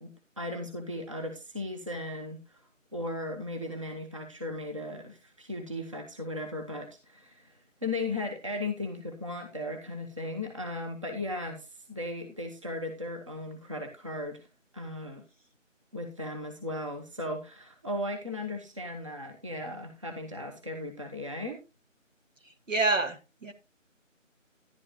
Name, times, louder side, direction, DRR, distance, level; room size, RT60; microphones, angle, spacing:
voice 1, 0.0-2.6 2.9-7.5 7.8-14.4 14.7-15.2 15.9-21.6, left 2 dB, 25° right, 3 dB, 1.1 m, -36 dB
voice 2, 22.7-23.5, right 3 dB, 70° right, 6 dB, 2.3 m, -27 dB
11.5 x 11.0 x 2.3 m, 0.26 s
figure-of-eight pair, 165°, 39 cm